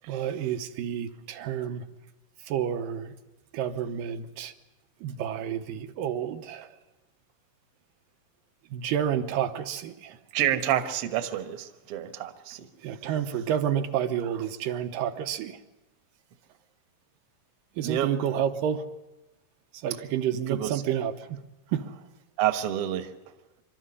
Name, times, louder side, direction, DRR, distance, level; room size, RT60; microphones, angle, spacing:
voice 1, 0.1-1.9 2.5-3.1 3.5-4.5 5.0-6.7 8.7-10.1 12.8-15.6 17.8-18.8 19.8-21.4 21.7-21.9, right 9 dB, 80° right, 6 dB, 2.7 m, -30 dB
voice 2, 10.3-12.7 17.8-18.1 20.5-20.8 22.4-23.1, right 11 dB, 55° right, 9 dB, 1.8 m, -28 dB
26.0 x 13.0 x 9.7 m, 1.0 s
omnidirectional pair, 4.0 m